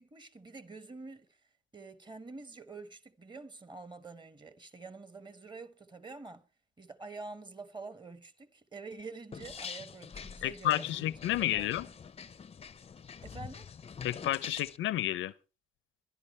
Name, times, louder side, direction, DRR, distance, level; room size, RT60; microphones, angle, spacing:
voice 1, 0.0-1.4 1.7-6.5 6.8-10.9 11.4-11.7 13.2-13.7, right 3 dB, 25° right, 1.4 m, -47 dB
sound 1, 9.3-14.8, left 6 dB, 30° left, 0.6 m, -45 dB
voice 2, 10.4-11.9 14.0-15.3, left 14 dB, 80° left, 0.6 m, -31 dB
23.0 x 11.5 x 3.2 m
cardioid pair, 90°, 20 cm